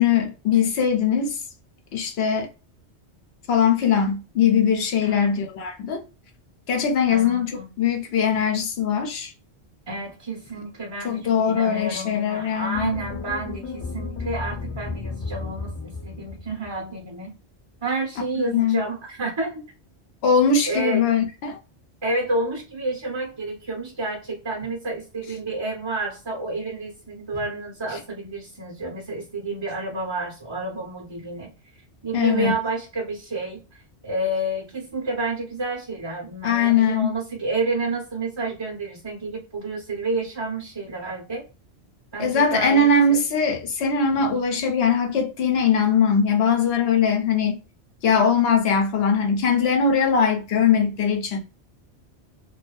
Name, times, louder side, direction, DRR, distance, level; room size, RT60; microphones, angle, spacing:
voice 1, 0.0-1.4 1.9-2.5 3.5-6.0 6.7-9.3 11.0-12.9 18.5-18.8 20.2-21.6 32.1-32.5 36.4-37.1 42.2-47.6 48.0-51.4, left 5 dB, 70° left, 0.8 m, -21 dB
voice 2, 5.0-5.4 7.1-7.7 9.9-17.3 17.8-19.6 20.7-21.0 22.0-31.5 32.0-33.6 34.0-41.4 42.1-43.2, right 2 dB, 30° right, 0.6 m, -30 dB
sound 1, 12.7-17.0, left 3 dB, 35° left, 0.5 m, -33 dB
2.5 x 2.3 x 2.2 m
omnidirectional pair, 1.1 m